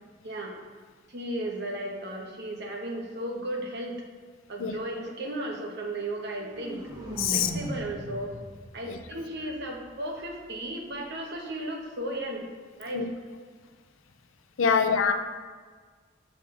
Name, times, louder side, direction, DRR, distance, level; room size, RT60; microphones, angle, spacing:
voice 1, 1.1-4.0 4.5-6.9 7.3-8.3 8.7-12.5 12.8-13.1 14.6-14.9, right 1 dB, 60° right, 1 dB, 1.1 m, -35 dB
sound 1, 6.1-10.2, right 1 dB, 20° right, 1.2 m, -39 dB
voice 2, 7.2-7.5 8.9-9.0 12.9-13.1 14.6-15.1, left 6 dB, 85° left, 7 dB, 0.6 m, -24 dB
6.9 x 6.4 x 3.8 m, 1.5 s
head